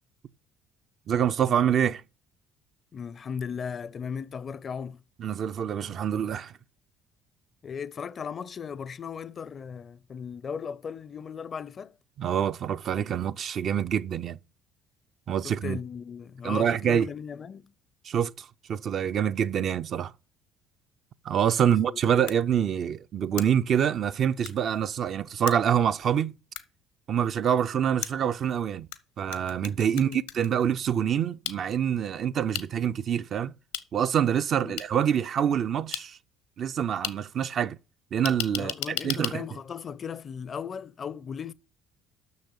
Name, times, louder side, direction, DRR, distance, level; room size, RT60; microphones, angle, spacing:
voice 1, 1.1-2.0 5.2-6.5 12.2-14.4 15.3-15.8 16.4-17.1 18.0-20.1 21.2-26.3 27.1-28.9 29.2-33.5 33.9-36.2 36.6-37.8 38.1-39.4, right 9 dB, 50° right, 0.4 m, -26 dB
voice 2, 2.9-5.0 7.6-12.0 15.4-17.7 21.6-22.2 29.9-30.3 34.6-34.8 38.5-41.5, left 6 dB, 40° left, 0.5 m, -37 dB
sound 1, 22.3-22.4 23.4-23.5 24.4-24.5 25.5-25.6 26.5-26.6 28.0-29.0 29.3-30.5 31.4-31.6 32.5-32.6 33.7-33.8 34.8-34.9 35.9-36.0 37.0-37.1 38.2-39.3, left 11 dB, 75° left, 0.9 m, -33 dB
9.5 x 6.6 x 7.1 m
figure-of-eight pair, 55°, 0 cm